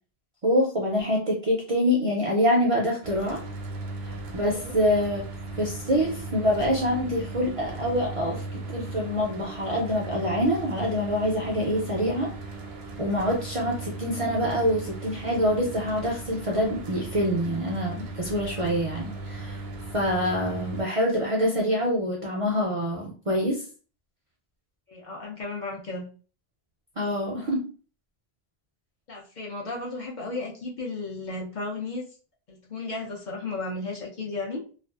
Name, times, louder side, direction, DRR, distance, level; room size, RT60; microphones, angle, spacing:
voice 1, 0.4-3.4 4.0-5.2 5.6-12.3 13.0-19.6 19.9-23.6 27.0-27.6, equal, 45° right, -2 dB, 0.4 m, -25 dB
Mechanical fan, 3.0-20.8, right 2 dB, 80° right, 0.8 m, -37 dB
voice 2, 24.9-26.1 29.1-32.1 32.5-34.6, left 3 dB, 55° left, -2 dB, 0.7 m, -34 dB
2.4 x 2.3 x 2.2 m, 0.38 s
omnidirectional pair, 1.0 m